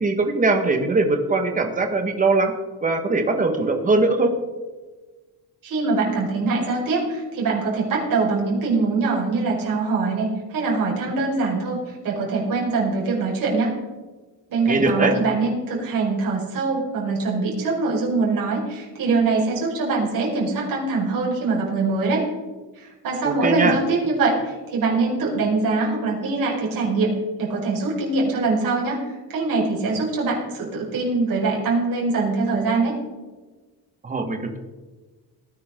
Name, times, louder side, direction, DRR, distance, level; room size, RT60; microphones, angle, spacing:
voice 1, 0.0-2.5 2.8-4.3 14.7-15.1 23.2-23.8 34.0-34.6, right 3 dB, 20° right, 5 dB, 1.6 m, -21 dB
voice 2, 5.6-13.7 14.5-22.3 22.8-27.1 27.4-32.9, right 3 dB, 60° right, -3 dB, 5.3 m, -23 dB
18.5 x 10.0 x 3.8 m, 1.3 s
cardioid pair, 175°, 38 cm